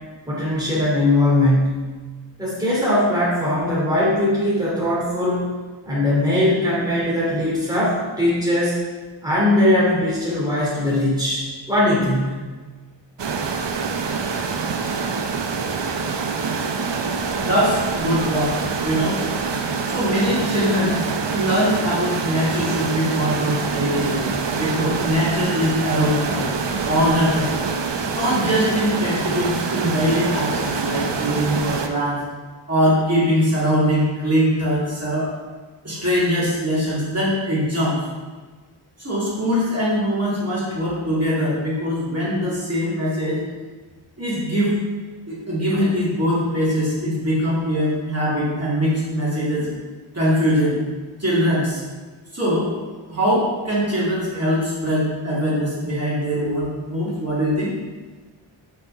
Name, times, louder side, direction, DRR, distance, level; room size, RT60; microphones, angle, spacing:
voice 1, 0.3-1.9 2.4-5.4 5.9-8.8 9.2-12.4, left 1 dB, 10° right, -7 dB, 2.8 m, -20 dB
sound 1, 13.2-31.9, right 5 dB, 60° right, 0.8 m, -25 dB
voice 2, 17.3-18.6 18.8-19.2 19.9-26.5 26.9-27.6 28.1-32.2 32.7-35.4 35.8-38.0 39.0-43.4 44.2-44.8 45.3-49.8 50.1-50.8 51.2-51.8 52.3-52.8 53.1-57.7, equal, 30° right, -8 dB, 2.9 m, -22 dB
6.5 x 6.5 x 5.8 m, 1.4 s
wide cardioid pair, 95°, 48 cm